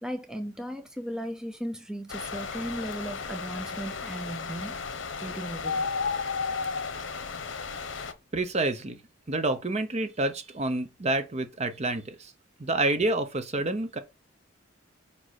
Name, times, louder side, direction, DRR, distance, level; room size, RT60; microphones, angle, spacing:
voice 1, 0.0-4.8 5.2-5.9, equal, 5° right, 0.7 m, -36 dB
sound 1, 2.1-8.1, left 5 dB, 70° left, 1.0 m, -33 dB
voice 2, 8.3-9.0 9.3-12.3 12.6-14.0, right 2 dB, 35° right, 0.8 m, -28 dB
5.0 x 5.0 x 4.1 m
head